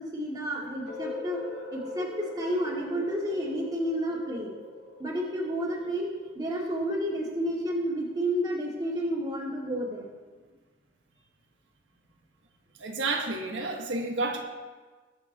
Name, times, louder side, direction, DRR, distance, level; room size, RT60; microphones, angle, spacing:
voice 1, 0.0-1.4 1.7-4.5 5.0-10.1, equal, 20° right, -4 dB, 2.5 m, -31 dB
sound 1, 0.9-6.7, left 3 dB, 80° left, 4.6 m, -42 dB
voice 2, 12.8-14.4, right 3 dB, 85° right, 1 dB, 1.4 m, -30 dB
19.5 x 7.3 x 4.2 m, 1.3 s
head